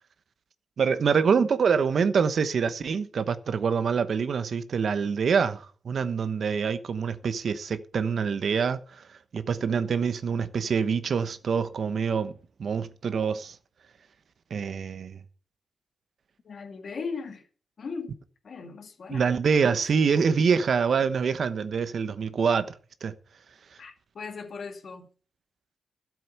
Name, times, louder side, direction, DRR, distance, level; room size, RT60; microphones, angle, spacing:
voice 1, 0.8-9.0 9.3-12.3 12.6-13.6 14.5-15.2 19.1-22.7 23.0-23.1, right 6 dB, 60° right, 1.0 m, -25 dB
voice 2, 16.4-17.5 17.8-18.2 18.4-19.3 19.6-19.8 23.8-25.1, left 5 dB, 60° left, 2.2 m, -38 dB
12.5 x 7.7 x 6.6 m
cardioid pair, 100°, 0 cm